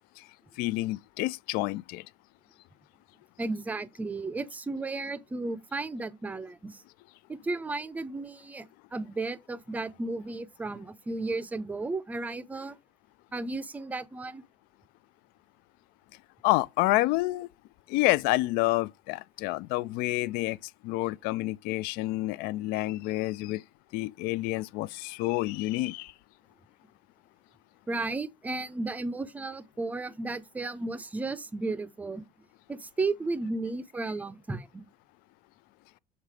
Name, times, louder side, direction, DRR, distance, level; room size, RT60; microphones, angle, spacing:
voice 1, 0.6-2.0 16.4-17.5 17.9-20.6 20.8-23.6 23.9-26.1, left 19 dB, 75° left, 0.4 m, -28 dB
voice 2, 3.4-6.8 7.3-12.8 13.3-14.4 27.9-32.2 32.7-34.8, right 3 dB, 10° right, 0.5 m, -34 dB
7.4 x 3.9 x 4.8 m
cardioid pair, 160°, 15 cm